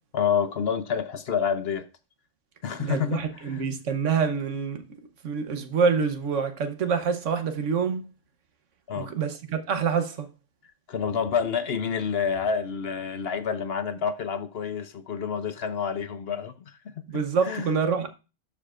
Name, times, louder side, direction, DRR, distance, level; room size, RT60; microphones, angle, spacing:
voice 1, 0.1-1.9 2.6-3.6 8.9-9.1 10.9-16.5 17.4-17.8, left 7 dB, 60° left, 1.0 m, -28 dB
voice 2, 2.8-4.8 5.2-8.1 9.0-10.3 17.1-18.1, right 6 dB, 80° right, 1.3 m, -26 dB
12.5 x 4.9 x 2.5 m
omnidirectional pair, 1.3 m